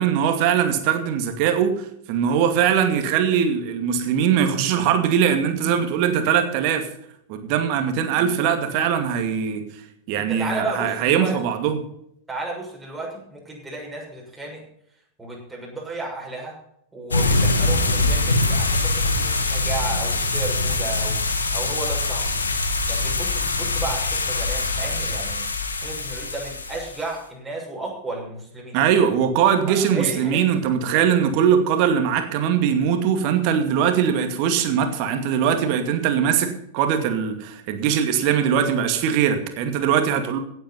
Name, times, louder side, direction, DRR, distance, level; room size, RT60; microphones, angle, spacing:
voice 1, 0.0-6.9 7.3-9.6 10.1-11.8 28.7-40.4, right 8 dB, 45° right, 7 dB, 2.3 m, -21 dB
voice 2, 10.1-11.5 12.3-14.6 15.2-16.5 16.9-22.4 22.9-25.5 25.8-28.8 29.7-30.6, right 2 dB, 10° right, -2 dB, 6.4 m, -33 dB
sound 1, 17.1-27.0, left 2 dB, 75° left, 2.0 m, -23 dB
16.5 x 9.0 x 5.7 m, 0.72 s
figure-of-eight pair, 90°, 0 cm